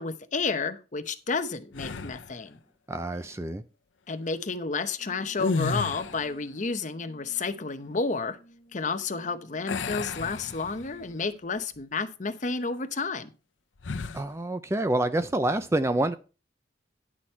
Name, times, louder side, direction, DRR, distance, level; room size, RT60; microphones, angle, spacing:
voice 1, 0.0-2.6 4.1-8.4 8.7-13.3, left 4 dB, 40° left, 0.8 m, -31 dB
sound 1, 1.7-2.4 5.3-6.4 9.7-11.1 11.6-11.8 13.8-14.3, left 4 dB, 85° left, 0.7 m, -32 dB
voice 2, 2.9-3.6 14.1-16.1, right 1 dB, 15° right, 0.4 m, -27 dB
Brass instrument, 5.0-11.4, right 1 dB, 15° left, 2.3 m, -55 dB
10.0 x 6.2 x 4.4 m
head